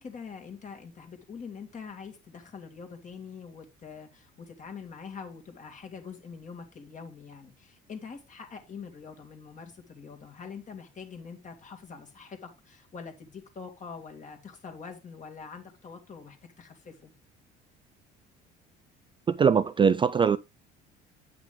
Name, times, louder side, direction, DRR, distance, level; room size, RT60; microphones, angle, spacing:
voice 1, 0.0-17.1, left 5 dB, 40° left, 2.3 m, -44 dB
voice 2, 19.3-20.4, right 6 dB, 25° right, 0.3 m, -22 dB
8.8 x 5.9 x 3.5 m
supercardioid pair, 80°, 20 cm